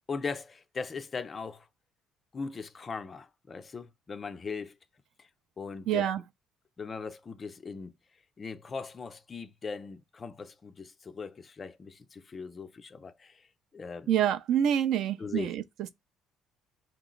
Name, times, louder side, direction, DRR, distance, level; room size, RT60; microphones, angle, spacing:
voice 1, 0.1-1.7 2.3-4.8 5.2-5.3 5.6-6.2 6.8-7.9 8.4-13.5 13.7-14.1 15.2-15.5, left 5 dB, 20° left, 0.3 m, -39 dB
voice 2, 5.9-6.2 14.1-15.6, right 10 dB, 60° right, 0.4 m, -26 dB
4.4 x 3.0 x 3.7 m
cardioid pair, 175°, 0 cm